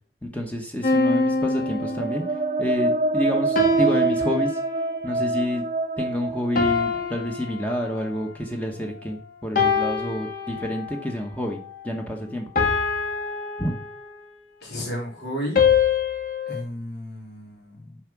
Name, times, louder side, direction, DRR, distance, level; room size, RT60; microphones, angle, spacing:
voice 1, 0.2-4.6 5.0-5.6 6.0-12.5 13.6-13.7, equal, 10° left, 2 dB, 1.1 m, -28 dB
sound 1, 0.8-2.5 3.5-5.1 6.5-8.2 9.5-11.1 12.5-14.3 15.5-16.6, left 4 dB, 50° left, 1.7 m, -24 dB
sound 2, 1.6-7.4, right 3 dB, 40° right, 0.4 m, -26 dB
voice 2, 14.6-15.6 16.5-18.0, equal, 65° left, -3 dB, 3.8 m, -33 dB
7.2 x 5.0 x 6.0 m, 0.43 s
head